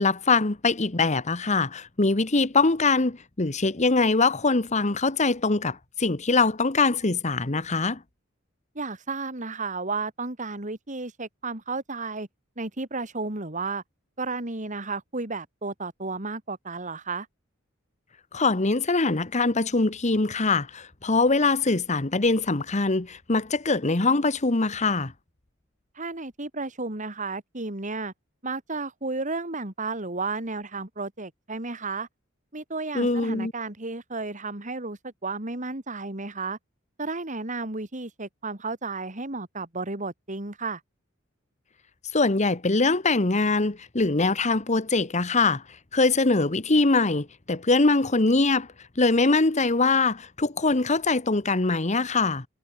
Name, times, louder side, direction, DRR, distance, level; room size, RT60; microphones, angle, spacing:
voice 1, 0.0-8.0 18.3-25.1 32.9-33.5 42.1-45.6 45.9-48.7 49.0-52.4, left 3 dB, 35° left, 1.3 m, -23 dB
voice 2, 8.7-12.3 12.6-13.8 14.2-17.3 25.9-28.1 28.4-32.1 32.5-36.6 37.0-40.8, right 3 dB, 40° right, 2.8 m, -33 dB
head